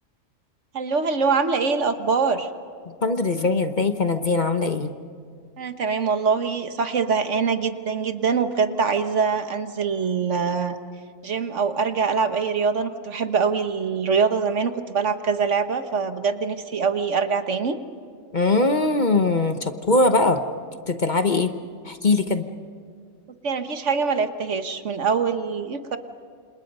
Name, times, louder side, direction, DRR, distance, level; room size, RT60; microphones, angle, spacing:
voice 1, 0.7-2.5 5.6-10.8 11.2-17.8 23.4-26.0, right 5 dB, 65° right, 9 dB, 1.5 m, -24 dB
voice 2, 3.0-4.9 18.3-20.4 20.9-21.5 21.9-22.4, left 3 dB, 40° left, 8 dB, 1.1 m, -21 dB
29.0 x 27.0 x 5.4 m, 2.3 s
omnidirectional pair, 1.4 m